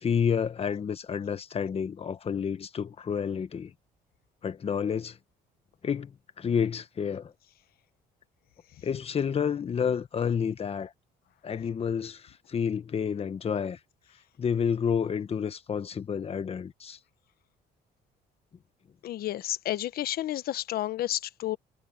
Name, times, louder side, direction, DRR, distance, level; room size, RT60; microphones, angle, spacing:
voice 1, 0.0-3.7 4.4-5.2 5.8-6.1 6.4-7.3 8.8-10.9 11.4-13.8 14.4-17.0, left 7 dB, 35° left, 1.3 m, -29 dB
voice 2, 19.0-21.6, left 13 dB, 65° left, 1.1 m, -31 dB
cardioid pair, 110°, 17 cm